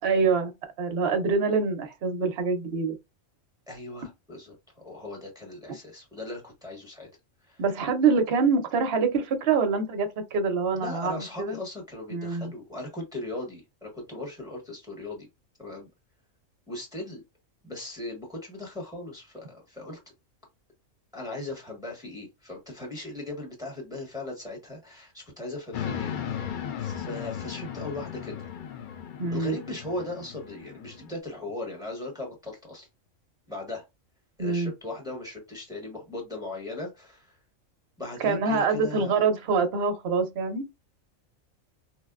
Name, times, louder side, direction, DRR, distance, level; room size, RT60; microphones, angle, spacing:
voice 1, 0.0-0.5 0.8-3.0 7.6-11.6 12.1-12.5 29.2-29.6 34.4-34.7 38.2-40.7, right 4 dB, 55° right, 0.8 m, -25 dB
voice 2, 3.7-4.5 4.8-7.1 7.4-7.6 10.8-15.3 15.6-15.9 16.7-17.2 17.6-20.0 21.1-28.4 29.3-32.9 33.5-33.8 34.4-37.4 38.0-39.3, left 2 dB, 5° right, 1.1 m, -38 dB
sound 1, 25.7-31.2, left 9 dB, 90° left, 0.4 m, -36 dB
4.5 x 2.1 x 2.3 m
omnidirectional pair, 1.4 m